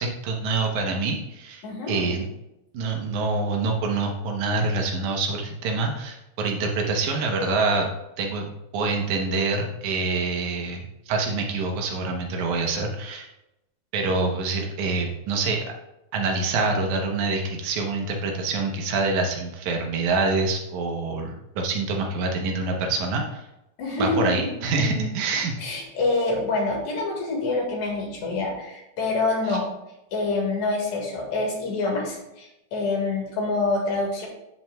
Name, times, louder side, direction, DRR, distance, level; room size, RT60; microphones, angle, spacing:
voice 1, 0.0-2.3 2.7-7.9 8.2-13.3 13.9-15.6 16.1-23.5 24.0-25.5 29.5-29.6, right 3 dB, 85° right, 2 dB, 2.4 m, -26 dB
voice 2, 1.6-2.1 23.8-25.1 25.6-29.7 30.1-34.3, left 3 dB, 80° left, 0 dB, 3.1 m, -26 dB
11.0 x 7.4 x 2.2 m, 0.89 s
omnidirectional pair, 3.3 m